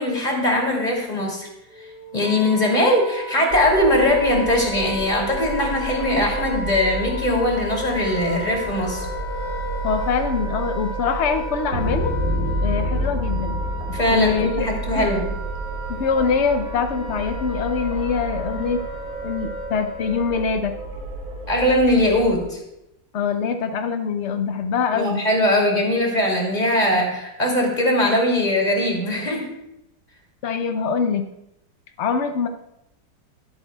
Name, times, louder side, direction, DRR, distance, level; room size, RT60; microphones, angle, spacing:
voice 1, 0.0-1.5 2.1-9.1 13.9-15.3 21.5-22.6 24.9-29.5, left 1 dB, 20° left, -1 dB, 2.7 m, -20 dB
Wind instrument woodwind instrument, 1.7-20.5, left 1 dB, 75° right, 3.1 m, -34 dB
sound 1, 3.5-22.4, right 1 dB, 55° right, 2.0 m, -30 dB
voice 2, 9.8-12.1 12.6-13.6 14.1-14.7 14.9-15.1 15.9-18.8 19.2-20.7 23.1-25.2 26.9-27.0 30.4-31.3 32.0-32.5, left 5 dB, 75° left, 7 dB, 0.6 m, -24 dB
22.5 x 8.3 x 2.3 m, 0.84 s
omnidirectional pair, 2.0 m